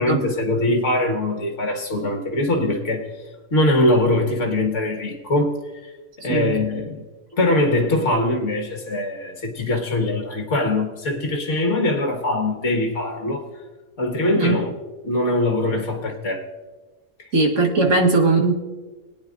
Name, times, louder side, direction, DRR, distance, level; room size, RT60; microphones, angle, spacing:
voice 1, 0.0-3.1 3.5-5.9 6.2-7.0 7.3-13.5 14.0-14.7 15.0-16.5 17.2-17.3, left 1 dB, 55° left, 1.9 m, -22 dB
voice 2, 17.3-18.6, right 3 dB, 60° right, 1.9 m, -19 dB
22.5 x 9.3 x 2.5 m
omnidirectional pair, 1.5 m